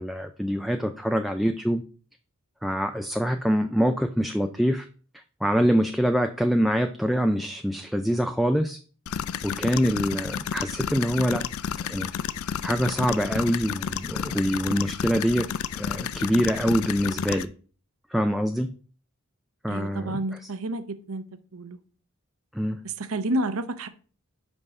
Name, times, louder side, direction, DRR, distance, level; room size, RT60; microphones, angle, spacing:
voice 1, 0.0-1.8 2.6-4.8 5.4-8.8 9.4-11.4 11.9-12.1 12.6-15.5 15.8-17.5 18.1-18.7 19.6-20.5 22.6-22.8, equal, ahead, 6 dB, 0.3 m, -25 dB
sound 1, 9.1-17.4, left 8 dB, 75° left, 0.4 m, -31 dB
voice 2, 19.7-21.2 21.5-21.8 22.8-23.9, right 1 dB, 75° right, 11 dB, 0.7 m, -30 dB
5.5 x 5.3 x 4.8 m, 0.40 s
head